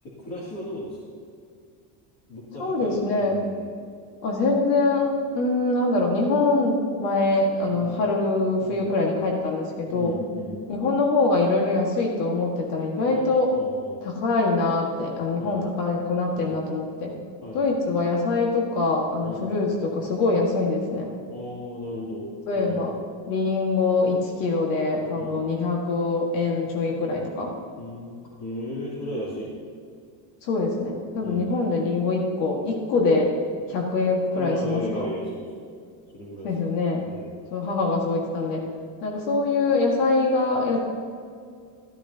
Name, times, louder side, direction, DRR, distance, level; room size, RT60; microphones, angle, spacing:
voice 1, 0.0-1.2 2.3-3.7 7.7-8.1 8.6-8.9 9.9-10.7 13.0-14.0 15.4-15.6 16.3-16.6 17.4-17.8 19.2-19.5 21.3-22.3 22.5-22.9 25.1-25.4 27.8-29.6 31.2-31.5 34.3-35.6 36.1-36.5 37.0-37.4, left 1 dB, 45° left, -6 dB, 2.8 m, -35 dB
voice 2, 2.6-3.4 4.2-10.2 10.7-13.5 14.1-17.1 17.5-21.1 22.5-22.9 23.3-27.5 30.4-33.3 33.7-35.1 36.4-37.0 37.5-38.6 39.0-40.8, left 3 dB, 85° left, -1 dB, 1.8 m, -24 dB
14.5 x 10.5 x 2.8 m, 2.2 s
cardioid pair, 150°, 49 cm